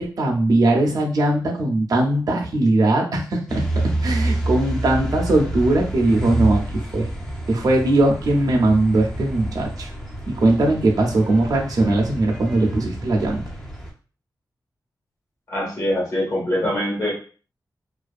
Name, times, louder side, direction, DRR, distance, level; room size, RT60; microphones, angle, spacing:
voice 1, 0.0-3.6 4.0-6.6 6.9-7.1 7.5-9.9 10.3-13.4, right 2 dB, 55° right, -1 dB, 0.5 m, -20 dB
sound 1, 3.5-13.9, right 1 dB, 5° left, 0.4 m, -28 dB
voice 2, 15.5-17.1, left 1 dB, 45° left, -4 dB, 1.3 m, -23 dB
2.5 x 2.2 x 2.4 m, 0.39 s
wide cardioid pair, 145°, 7 cm